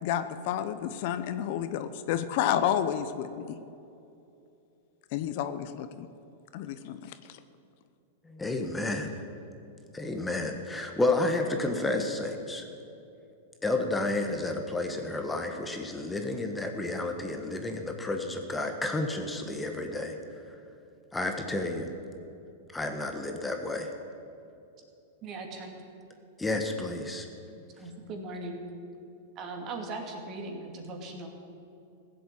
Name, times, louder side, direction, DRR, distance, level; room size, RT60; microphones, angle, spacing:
voice 1, 0.0-3.6 5.1-6.1 6.5-7.4, left 10 dB, 55° left, 11 dB, 0.8 m, -30 dB
voice 2, 8.2-9.1 9.9-12.6 13.6-20.2 21.1-21.9 22.7-23.9 26.4-27.3, left 2 dB, 10° left, 4 dB, 1.4 m, -31 dB
voice 3, 25.2-25.8 27.8-28.6 29.4-31.3, right 3 dB, 35° right, 3 dB, 2.6 m, -39 dB
15.5 x 7.8 x 8.5 m, 2.7 s
hypercardioid pair, 125°, 0 cm